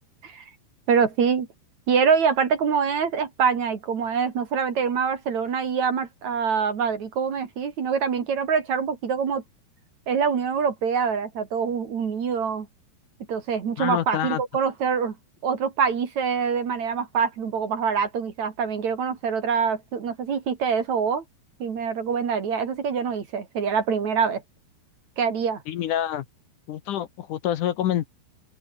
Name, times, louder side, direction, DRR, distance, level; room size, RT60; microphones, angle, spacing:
voice 1, 0.9-1.5 1.9-9.4 10.1-12.7 13.3-15.2 15.4-21.2 21.6-24.4 25.2-25.6, right 6 dB, 50° right, 3.4 m, -25 dB
voice 2, 13.8-14.4 25.7-26.3 26.7-28.1, left 11 dB, 65° left, 2.2 m, -27 dB
open air
omnidirectional pair, 4.8 m